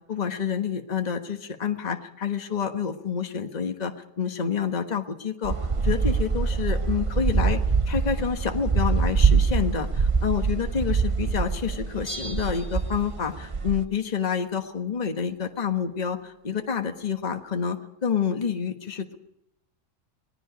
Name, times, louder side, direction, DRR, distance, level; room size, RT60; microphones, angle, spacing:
voice 1, 0.1-5.5 5.8-7.6 7.9-19.1, left 7 dB, 30° left, 5 dB, 1.3 m, -28 dB
sound 1, 5.4-13.8, right 5 dB, 30° right, 0.7 m, -24 dB
Bell, 12.1-13.5 13.7-13.8, right 1 dB, 10° right, 4.2 m, -40 dB
26.5 x 19.5 x 5.1 m, 0.83 s
omnidirectional pair, 1.5 m